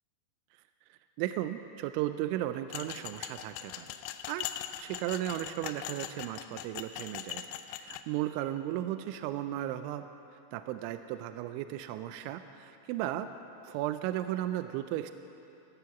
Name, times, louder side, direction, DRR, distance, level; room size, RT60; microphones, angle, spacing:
voice 1, 0.9-4.0 4.3-4.5 4.8-10.1 10.5-13.3 13.6-15.1, right 13 dB, 85° right, 10 dB, 2.9 m, -35 dB
sound 1, 2.7-8.0, left 12 dB, 85° left, 2.5 m, -41 dB
16.5 x 14.5 x 5.9 m, 2.8 s
omnidirectional pair, 5.5 m